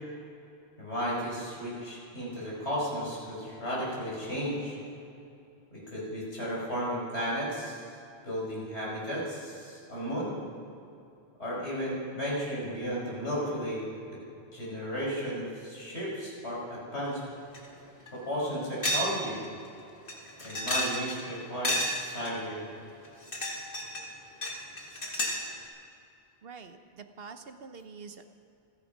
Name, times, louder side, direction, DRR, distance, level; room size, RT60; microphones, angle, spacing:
voice 1, 0.8-4.8 5.7-7.9 8.2-10.4 11.4-13.9 14.5-17.2 18.1-19.4 20.4-22.7, equal, 85° left, -5 dB, 5.6 m, -34 dB
sound 1, 17.5-17.7 18.1-18.2 18.8-19.2 19.4-19.5 20.1-21.2 21.6-22.3 23.1-24.1 24.4-25.5, equal, 55° left, 2.0 m, -31 dB
voice 2, 26.4-28.2, right 5 dB, 65° right, 8 dB, 1.1 m, -46 dB
27.5 x 9.6 x 5.3 m, 2.7 s
omnidirectional pair, 1.1 m